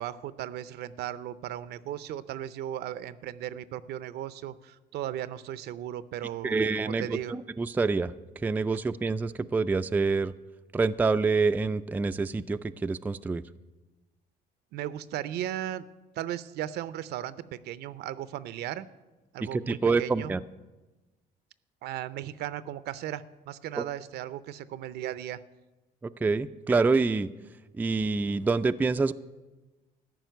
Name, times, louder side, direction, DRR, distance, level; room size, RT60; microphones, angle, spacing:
voice 1, 0.0-7.4 14.7-15.9 16.2-17.4 17.6-18.9 19.3-20.3 21.8-25.4, right 12 dB, 75° right, 16 dB, 0.6 m, -36 dB
voice 2, 6.4-8.1 8.4-10.3 10.7-13.4 19.4-20.4 23.8-23.9 26.2-27.3 27.8-29.1, right 4 dB, 10° right, 11 dB, 0.3 m, -26 dB
14.0 x 5.7 x 9.2 m, 1.1 s
cardioid pair, 110°, 17 cm